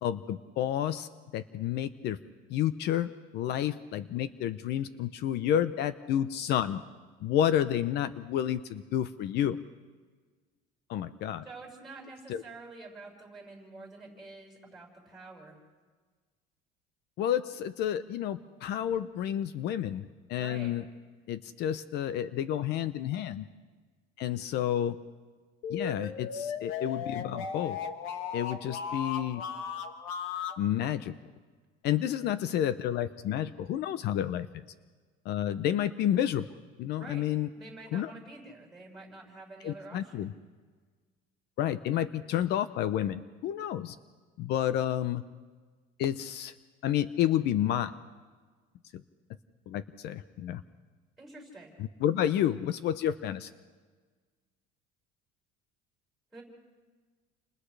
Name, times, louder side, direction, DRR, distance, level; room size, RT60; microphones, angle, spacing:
voice 1, 0.0-2.2 2.5-6.8 7.2-9.6 10.9-11.4 12.3-12.4 17.2-20.8 21.3-23.5 24.2-25.0 25.7-27.8 28.3-29.4 30.6-31.1 31.8-34.6 35.2-36.5 36.8-37.5 37.9-38.1 39.6-40.3 41.6-44.0 44.4-45.2 46.0-46.5 46.8-47.9 48.9-49.0 49.7-50.6 51.8-53.5, left 11 dB, 55° left, 13 dB, 0.7 m, -30 dB
voice 2, 11.4-15.6 20.4-20.7 37.0-37.3 37.6-40.3 51.2-51.7 56.3-56.4, right 3 dB, ahead, 0 dB, 6.0 m, -48 dB
sound 1, 25.6-30.6, left 7 dB, 90° left, 1.5 m, -36 dB
29.5 x 26.5 x 3.4 m, 1.4 s
cardioid pair, 150°, 20 cm